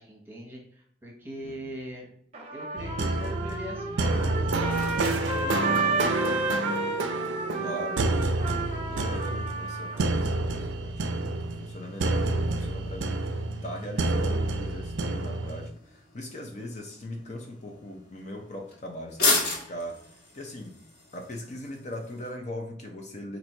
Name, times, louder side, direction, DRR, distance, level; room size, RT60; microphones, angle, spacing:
voice 1, 0.0-2.1 2.5-4.6 4.9-7.1 8.9-9.2, equal, 10° right, -1 dB, 1.1 m, -42 dB
Trumpet, 2.3-10.0, right 3 dB, 35° right, 0.7 m, -32 dB
sound 1, 2.7-22.3, left 2 dB, 55° left, 1.5 m, -38 dB
sound 2, 2.8-15.7, right 2 dB, 80° right, 0.5 m, -29 dB
voice 2, 7.6-20.0 20.3-20.8 21.1-23.4, left 1 dB, 35° left, 1 dB, 0.6 m, -40 dB
4.3 x 2.6 x 4.4 m, 0.68 s
head